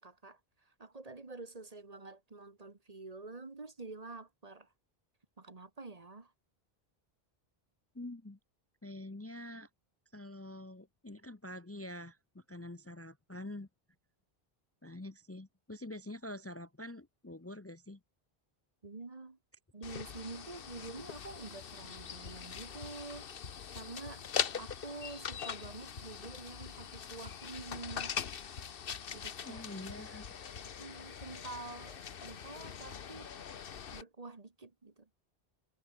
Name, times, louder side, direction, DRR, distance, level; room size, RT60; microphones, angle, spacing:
voice 1, 0.0-4.7 5.4-6.3 18.8-19.4 19.7-23.4 23.7-24.3 24.6-28.2 29.1-29.6 30.6-33.3 33.9-35.1, right 3 dB, 40° right, 1.5 m, -48 dB
voice 2, 7.9-8.4 8.8-9.7 10.1-13.7 14.8-18.0 29.4-30.3, left 1 dB, 15° left, 0.8 m, -46 dB
sound 1, 19.8-34.0, left 7 dB, 65° left, 1.1 m, -42 dB
Run, 22.0-31.4, left 5 dB, 85° left, 2.0 m, -53 dB
omnidirectional pair, 1.0 m